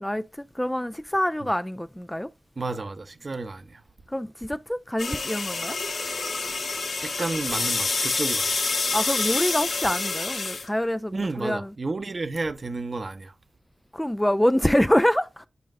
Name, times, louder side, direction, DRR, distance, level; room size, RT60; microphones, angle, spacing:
voice 1, 0.0-2.3 4.1-5.8 8.9-11.7 13.9-15.5, left 1 dB, 10° left, 0.3 m, -25 dB
voice 2, 2.6-3.8 7.0-8.5 11.1-13.3, right 3 dB, 50° right, 0.8 m, -31 dB
sound 1, 5.0-10.7, left 3 dB, 85° left, 1.3 m, -27 dB
9.3 x 5.1 x 2.5 m
cardioid pair, 55°, 0 cm